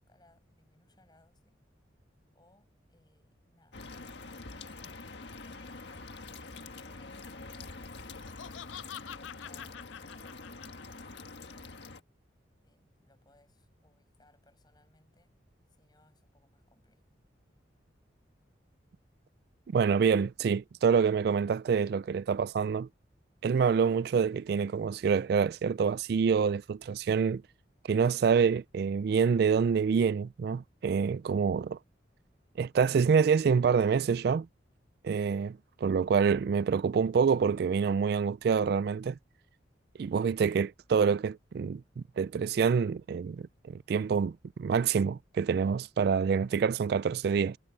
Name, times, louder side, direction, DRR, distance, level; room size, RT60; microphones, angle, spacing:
voice 1, 0.0-1.6 2.3-3.8 6.7-12.0 12.6-15.3 15.7-17.1, left 2 dB, 20° left, 7.4 m, -67 dB
sound 1, 3.7-12.0, left 3 dB, 65° left, 1.6 m, -45 dB
Laughter, 8.0-11.2, left 10 dB, 85° left, 0.4 m, -46 dB
voice 2, 19.7-22.9 23.4-27.4 27.8-31.8 32.6-34.5 35.0-39.2 40.0-47.6, right 6 dB, 55° right, 0.3 m, -27 dB
head